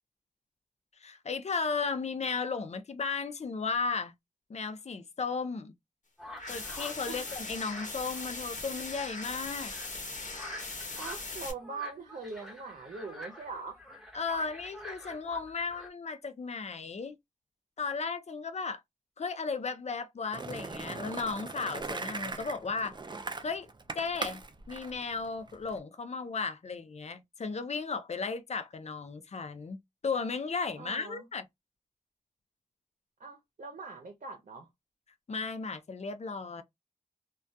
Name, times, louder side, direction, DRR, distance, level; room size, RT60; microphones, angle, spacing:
voice 1, 1.0-4.1 4.5-5.7 6.4-9.7 14.1-17.2 17.8-18.8 19.2-23.0 23.4-23.7 23.9-24.4 24.7-31.4 35.3-36.6, left 4 dB, 55° left, 0.5 m, -35 dB
sound 1, 6.2-15.9, left 1 dB, ahead, 1.0 m, -48 dB
sound 2, 6.4-11.5, left 3 dB, 70° left, 1.0 m, -40 dB
voice 2, 11.0-13.8 30.8-31.3 33.2-34.7, right 4 dB, 85° right, 0.6 m, -42 dB
Skateboard, 20.3-25.8, right 3 dB, 35° right, 0.4 m, -39 dB
2.3 x 2.2 x 2.6 m
wide cardioid pair, 70°, 13 cm